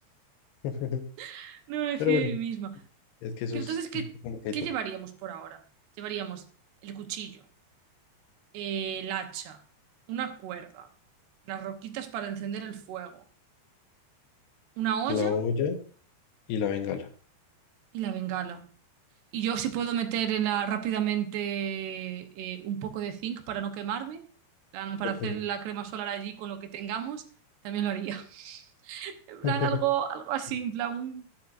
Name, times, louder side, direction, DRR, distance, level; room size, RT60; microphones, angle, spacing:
voice 1, 0.6-1.1 2.0-2.3 3.2-4.6 15.1-15.8 16.5-17.1 25.2-25.4 29.4-29.8, left 7 dB, 80° left, 6 dB, 3.1 m, -29 dB
voice 2, 1.2-2.8 3.5-4.1 4.5-5.6 6.0-6.4 6.8-7.4 8.5-9.6 10.1-10.9 11.5-13.2 14.8-15.4 17.9-18.6 19.3-24.2 24.7-27.2 27.6-31.3, right 9 dB, 80° right, 6 dB, 3.1 m, -32 dB
12.5 x 10.0 x 2.6 m, 0.42 s
omnidirectional pair, 4.8 m